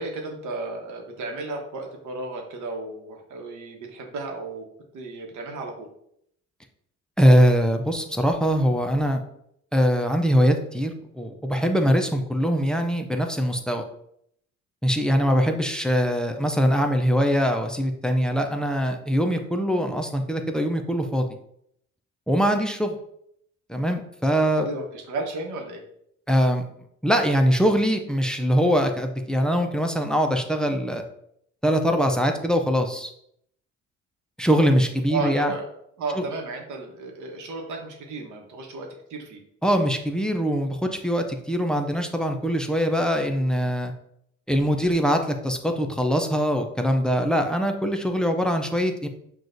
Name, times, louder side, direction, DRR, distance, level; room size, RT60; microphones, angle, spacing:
voice 1, 0.0-4.7 4.9-5.9 24.4-25.8 35.1-35.7 36.0-39.4, right 3 dB, 75° right, 2 dB, 1.0 m, -33 dB
voice 2, 7.2-9.2 9.7-13.8 14.8-21.3 22.3-23.0 23.7-24.7 26.3-26.7 27.0-31.0 31.6-33.1 34.4-35.5 36.2-36.3 39.6-43.9 44.5-49.1, equal, 5° left, 5 dB, 0.4 m, -22 dB
6.0 x 2.4 x 2.6 m, 0.72 s
cardioid pair, 90°, 30 cm